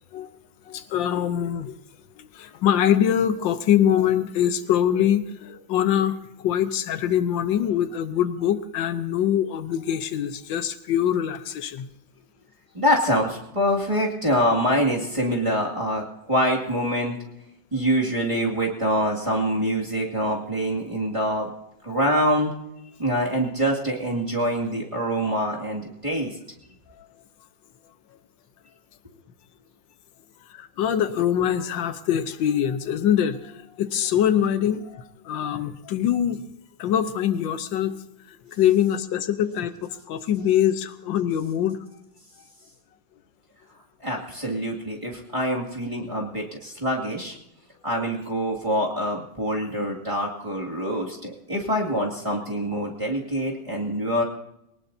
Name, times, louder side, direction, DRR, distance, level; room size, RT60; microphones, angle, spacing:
voice 1, 0.7-1.7 2.2-11.9 27.0-27.1 30.5-36.4 36.8-38.0 38.3-41.8, left 10 dB, 75° left, 12 dB, 1.6 m, -24 dB
voice 2, 12.7-17.2 17.7-21.5 21.8-22.5 23.0-26.3 44.0-47.4 47.8-54.2, equal, 15° right, -4 dB, 2.2 m, -25 dB
23.0 x 18.5 x 2.7 m, 0.81 s
omnidirectional pair, 2.1 m